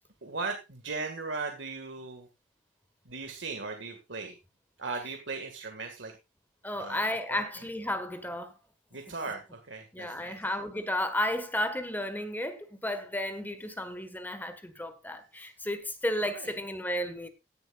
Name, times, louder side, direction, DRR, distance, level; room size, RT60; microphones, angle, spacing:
voice 1, 0.2-2.3 3.1-4.4 4.8-6.1 6.7-7.4 7.7-7.9 8.9-10.4 16.2-16.6, right 4 dB, 75° right, 1.9 m, -38 dB
voice 2, 6.6-8.5 9.9-17.3, left 1 dB, 10° left, 1.5 m, -33 dB
16.5 x 11.0 x 2.4 m
head